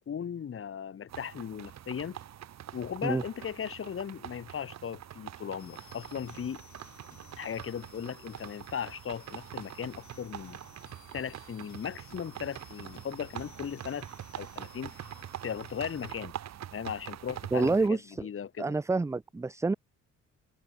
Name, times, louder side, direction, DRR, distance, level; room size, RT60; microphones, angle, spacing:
voice 1, 0.1-2.2 2.7-6.6 7.4-10.6 11.1-14.1 14.4-14.9 15.4-16.3 16.7-18.7, left 8 dB, 45° left, 1.7 m, -37 dB
sound 1, 1.1-17.9, right 11 dB, 60° right, 1.4 m, -45 dB
sound 2, 5.6-16.1, left 11 dB, 70° left, 3.2 m, -57 dB
voice 2, 17.5-18.3 18.6-19.7, right 3 dB, 10° right, 0.4 m, -28 dB
cardioid pair, 90°, 30 cm